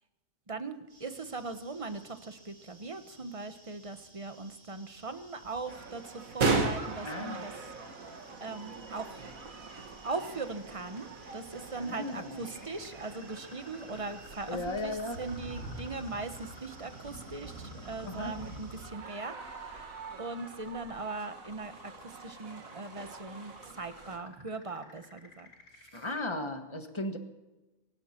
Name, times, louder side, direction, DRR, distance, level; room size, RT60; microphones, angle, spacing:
voice 1, 0.5-7.5 8.4-9.2 10.0-19.4 19.6-19.9 20.2-25.5 25.8-26.1, right 3 dB, 25° right, 9 dB, 1.0 m, -40 dB
sound 1, 0.9-18.8, right 2 dB, 70° right, 3.0 m, -51 dB
sound 2, 5.7-24.2, right 3 dB, 90° right, 2.1 m, -39 dB
sound 3, 6.5-26.2, left 1 dB, 70° left, 4.3 m, -55 dB
voice 2, 7.0-7.4 11.8-12.4 14.5-15.2 18.0-18.3 25.9-27.2, left 2 dB, 20° left, 6 dB, 1.5 m, -36 dB
23.5 x 11.5 x 4.4 m, 1.1 s
omnidirectional pair, 1.4 m